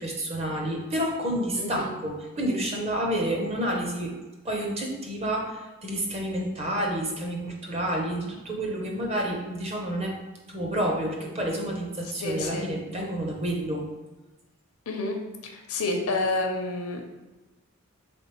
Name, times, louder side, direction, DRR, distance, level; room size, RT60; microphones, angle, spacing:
voice 1, 0.0-4.2 4.4-10.2 10.5-13.9, right 1 dB, 30° right, 0 dB, 0.6 m, -29 dB
voice 2, 1.5-1.9 12.2-12.6 14.9-15.2 15.7-17.0, left 2 dB, 80° left, 3 dB, 0.6 m, -28 dB
3.5 x 3.3 x 3.0 m, 1.1 s
head